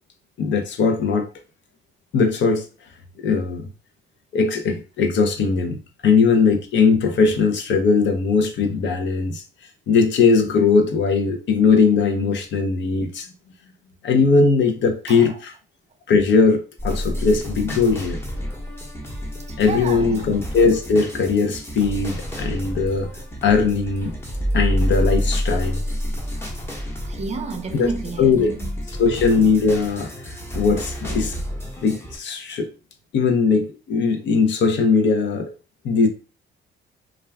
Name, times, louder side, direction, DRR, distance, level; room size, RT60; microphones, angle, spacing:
voice 1, 0.4-1.3 2.1-2.7 3.2-3.7 4.3-9.4 9.9-13.3 14.0-15.5 16.1-18.2 19.6-23.1 23.4-24.1 24.5-25.8 27.7-27.9 28.2-28.5 29.0-30.1 30.5-31.4 31.8-32.7 33.1-35.5 35.8-36.1, left 4 dB, 65° left, 0.6 m, -19 dB
sound 1, 16.8-32.2, equal, 10° left, 0.8 m, -29 dB
voice 2, 19.5-20.3 26.9-28.8, right 3 dB, 35° right, 0.5 m, -31 dB
2.3 x 2.1 x 3.3 m
cardioid pair, 90°, 20 cm